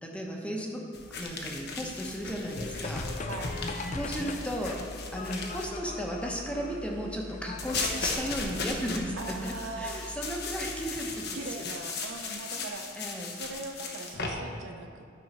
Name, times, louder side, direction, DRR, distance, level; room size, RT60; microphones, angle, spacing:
voice 1, 0.0-3.1 3.9-4.8 5.1-11.4 12.6-12.7 13.0-13.4, equal, 5° left, -1 dB, 1.0 m, -35 dB
sound 1, 0.9-5.7 7.6-14.3, left 4 dB, 60° left, 1.0 m, -37 dB
sound 2, 2.5-10.9, left 2 dB, 40° left, 0.6 m, -39 dB
voice 2, 3.3-4.0 9.2-10.4 11.3-12.8 13.3-15.1, right 3 dB, 85° right, 4 dB, 0.8 m, -41 dB
11.5 x 4.7 x 5.5 m, 2.3 s
head